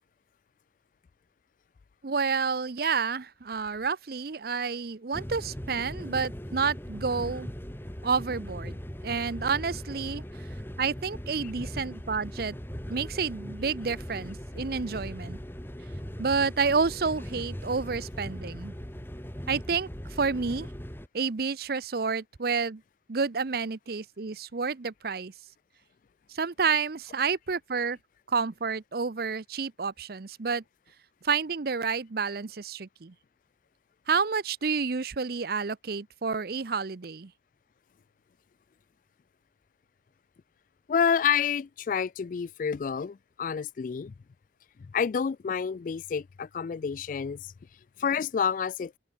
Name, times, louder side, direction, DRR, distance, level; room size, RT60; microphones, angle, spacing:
voice 1, 2.0-7.5 8.0-10.5 10.8-12.6 12.9-15.4 16.2-18.7 19.5-20.7 21.1-22.8 23.1-25.3 26.3-28.0 28.3-30.6 31.2-33.1 34.1-37.3, right 5 dB, 55° right, 0.7 m, -29 dB
sound 1, 5.1-21.1, equal, 10° left, 1.9 m, -39 dB
voice 2, 40.9-44.1 44.9-47.5 48.0-48.9, left 7 dB, 45° left, 0.3 m, -28 dB
open air
head